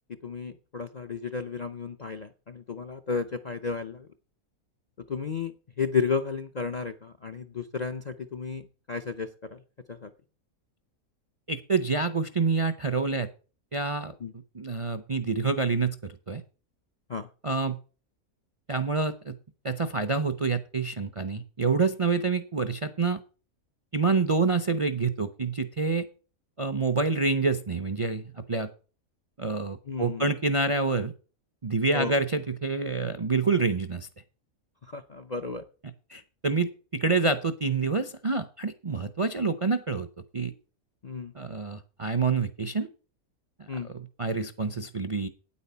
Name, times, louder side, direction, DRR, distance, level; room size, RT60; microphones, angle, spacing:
voice 1, 0.2-4.1 5.1-5.5 5.8-8.6 8.9-9.6 9.9-10.1 14.2-14.3 17.1-17.3 29.9-30.2 31.9-32.1 34.9-35.6 41.0-41.3 43.7-43.9, left 5 dB, 45° left, 10 dB, 0.5 m, -32 dB
voice 2, 11.5-13.3 13.7-14.1 14.5-16.4 17.4-17.8 18.7-19.3 19.6-23.2 23.9-26.0 26.6-28.2 28.5-28.7 29.4-31.1 31.6-34.1 36.1-40.1 40.3-40.5 41.3-42.9 43.8-45.3, right 4 dB, 35° right, 11 dB, 0.5 m, -27 dB
9.3 x 8.6 x 5.6 m, 0.36 s
omnidirectional pair, 1.5 m